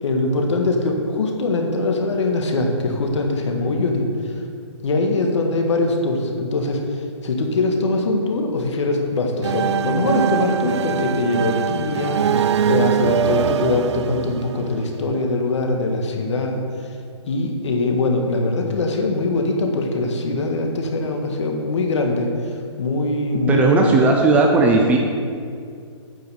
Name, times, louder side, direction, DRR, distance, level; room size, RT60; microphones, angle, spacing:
voice 1, 0.0-4.1 4.8-12.4 12.7-16.6 17.3-22.3 22.8-24.1, left 2 dB, 70° left, 2 dB, 1.9 m, -22 dB
sound 1, 9.4-15.2, right 8 dB, 65° right, 0.5 m, -22 dB
voice 2, 23.5-25.0, right 3 dB, 10° right, 1 dB, 0.5 m, -16 dB
9.4 x 5.8 x 7.0 m, 2.3 s
hypercardioid pair, 160°, 16 cm